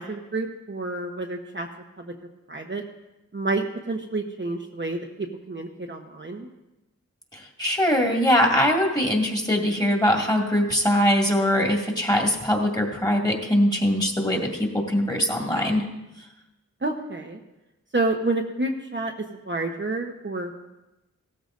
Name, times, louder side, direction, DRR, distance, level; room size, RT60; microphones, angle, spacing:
voice 1, 0.0-1.7 2.0-2.1 2.5-2.8 3.3-6.5 16.8-17.4 17.9-19.1 19.4-20.5, right 2 dB, 35° right, 0 dB, 1.0 m, -29 dB
voice 2, 7.3-15.9, equal, 10° left, 0 dB, 2.3 m, -22 dB
17.0 x 13.5 x 2.6 m, 0.98 s
wide cardioid pair, 70°, 33 cm